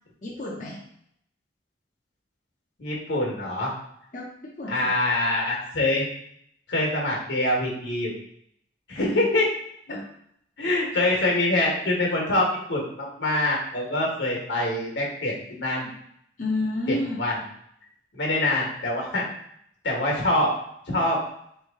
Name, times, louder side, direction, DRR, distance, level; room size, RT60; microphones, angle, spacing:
voice 1, 0.2-0.8 4.1-4.9 8.9-9.2 9.9-10.1 16.4-17.2, left 2 dB, 40° left, -3 dB, 0.5 m, -30 dB
voice 2, 2.8-3.7 4.7-6.0 6.7-8.1 8.9-9.5 9.9-10.0 10.6-15.9 16.9-17.3 18.1-19.3 19.8-20.5 20.9-21.2, left 1 dB, 80° left, -2 dB, 1.3 m, -25 dB
3.6 x 3.1 x 3.5 m, 0.70 s
head